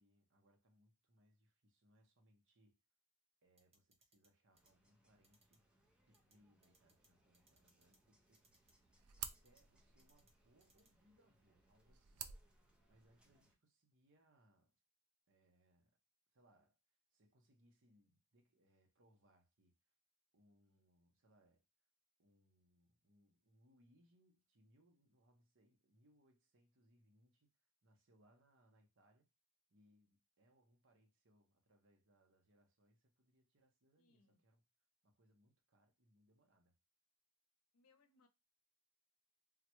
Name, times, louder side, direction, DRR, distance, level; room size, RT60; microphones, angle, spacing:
voice 1, 0.0-2.8 3.4-5.7 6.1-8.4 9.2-12.6 12.9-14.7 15.3-16.0 16.3-16.8 17.1-19.9 20.3-21.6 22.2-29.3 29.7-34.6 35.0-36.8, equal, 60° right, 0.9 m, -74 dB
sound 1, 3.6-4.3 4.6-4.7 5.2-5.6 6.1-6.3 6.6-7.1 7.3-8.0 8.3-8.7 9.4-9.6 10.0-10.3 10.6-10.9, right 2 dB, 30° right, 0.9 m, -73 dB
sound 2, 4.5-13.6, right 1 dB, 5° right, 0.5 m, -77 dB
sound 3, 8.4-13.4, right 9 dB, 85° right, 0.4 m, -54 dB
voice 2, 34.0-34.4 37.7-38.3, left 3 dB, 90° left, 0.6 m, -73 dB
3.6 x 2.2 x 2.9 m
head